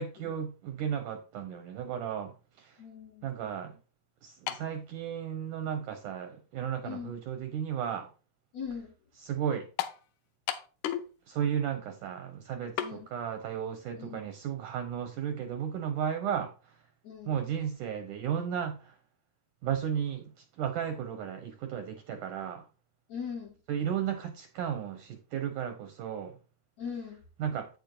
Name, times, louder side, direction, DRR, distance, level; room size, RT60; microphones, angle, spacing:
voice 1, 0.0-2.8 3.2-3.8 4.2-8.1 9.1-9.7 11.3-16.8 17.3-19.0 19.6-22.7 23.7-26.4 27.4-27.7, right 8 dB, 85° right, 1.8 m, -34 dB
voice 2, 2.8-3.3 6.8-7.1 8.5-8.9 12.8-13.1 14.0-14.2 17.0-17.3 23.1-23.5 26.8-27.2, left 6 dB, 70° left, 1.6 m, -39 dB
sound 1, 4.5-4.8 5.6-5.7 9.8-10.0 10.5-11.1 11.4-11.5 12.8-13.0, left 11 dB, 85° left, 2.6 m, -33 dB
8.9 x 8.2 x 2.5 m
omnidirectional pair, 4.4 m